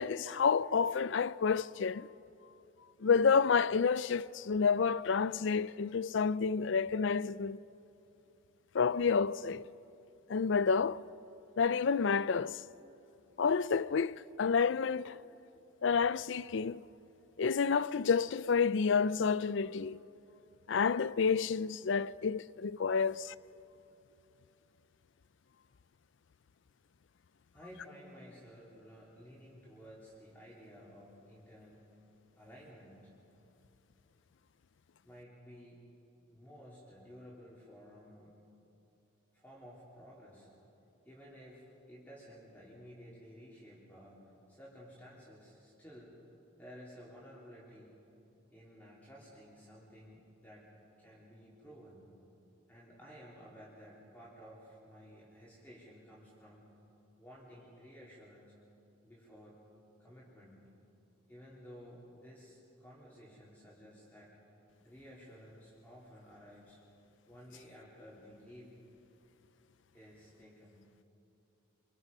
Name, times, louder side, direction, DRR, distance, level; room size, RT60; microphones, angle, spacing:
voice 1, 0.0-2.1 3.0-7.6 8.7-9.6 10.3-11.0 11.6-12.6 13.4-15.2 15.8-16.8 17.4-20.0 20.7-23.3, left 5 dB, 60° left, 0.4 m, -29 dB
voice 2, 27.5-31.9 32.4-33.1 35.0-35.8 36.3-38.4 39.3-40.5 41.0-44.2 44.5-46.1 46.5-48.1 48.5-52.0 52.7-56.8 57.2-58.6 59.0-59.7 60.0-60.6 61.3-64.4 64.8-66.8 67.3-68.7 69.9-70.8, equal, 10° left, 3.4 m, -54 dB
27.0 x 23.5 x 5.5 m
head